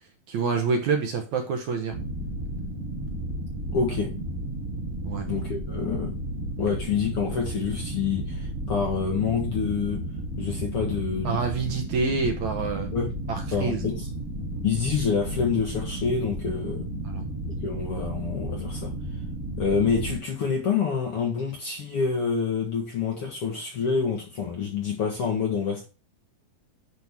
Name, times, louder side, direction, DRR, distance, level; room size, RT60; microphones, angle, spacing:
voice 1, 0.3-2.0 5.0-5.3 11.2-12.9 13.3-13.8 17.0-17.3, right 4 dB, 65° right, 2.1 m, -27 dB
sound 1, 1.9-20.2, right 1 dB, 90° right, 0.7 m, -33 dB
voice 2, 3.7-4.1 5.3-6.1 6.6-10.0 10.4-11.4 12.9-13.2 13.5-14.1 14.6-16.9 17.6-18.9 19.6-25.8, left 6 dB, 55° left, 1.8 m, -27 dB
11.0 x 6.1 x 3.6 m
omnidirectional pair, 4.2 m